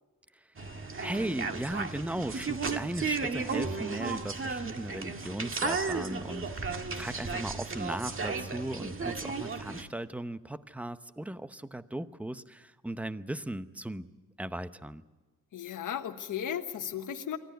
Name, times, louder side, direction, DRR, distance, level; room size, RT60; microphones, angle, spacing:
sound 1, 0.6-9.8, right 4 dB, 35° right, 1.8 m, -34 dB
voice 1, 1.0-14.1 14.4-15.0, right 1 dB, 5° right, 12 dB, 0.8 m, -37 dB
voice 2, 15.5-17.4, left 9 dB, 60° left, 6 dB, 1.4 m, -35 dB
24.5 x 14.5 x 9.4 m, 1.3 s
cardioid pair, 85°, 35 cm